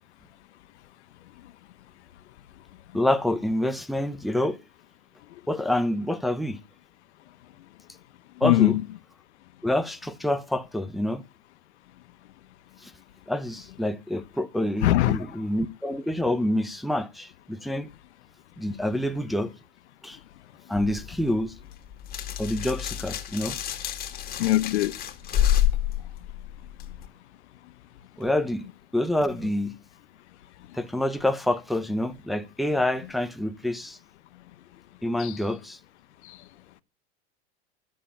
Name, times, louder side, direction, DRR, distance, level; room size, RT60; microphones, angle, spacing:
voice 1, 2.9-4.6 5.5-6.6 8.4-8.8 9.6-11.2 12.8-12.9 13.3-17.9 18.6-19.5 20.0-20.2 20.7-21.5 22.4-23.6 28.2-28.7 28.9-29.7 30.7-34.0 35.0-35.8, left 1 dB, ahead, 0.8 m, -27 dB
voice 2, 8.4-8.8 14.8-15.2 24.4-24.9 35.2-35.4 36.3-36.4, left 15 dB, 90° left, 1.1 m, -21 dB
sound 1, 20.8-27.1, left 11 dB, 25° left, 2.2 m, -29 dB
12.5 x 7.5 x 8.6 m
supercardioid pair, 155°, 33 cm